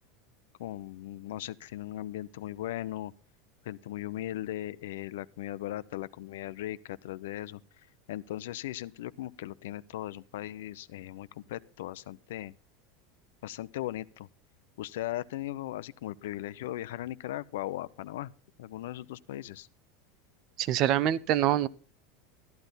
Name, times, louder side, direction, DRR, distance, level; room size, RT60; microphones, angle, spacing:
voice 1, 0.6-3.1 3.6-7.6 8.1-12.5 13.4-14.3 14.8-18.3 18.6-19.7, left 14 dB, 85° left, 0.7 m, -38 dB
voice 2, 20.6-21.7, right 12 dB, 35° right, 0.7 m, -25 dB
13.0 x 12.0 x 3.9 m
supercardioid pair, 170°, 0 cm